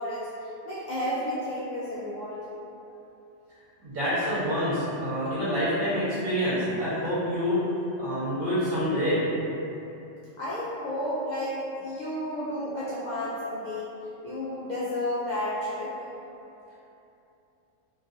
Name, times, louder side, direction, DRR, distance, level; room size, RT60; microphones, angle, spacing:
voice 1, 0.0-2.4 10.4-13.9 14.2-16.0, left 1 dB, 80° left, -9 dB, 0.4 m, -32 dB
voice 2, 3.8-7.6 8.0-9.2, equal, 50° right, -11 dB, 1.2 m, -27 dB
2.9 x 2.6 x 2.5 m, 2.9 s
omnidirectional pair, 1.3 m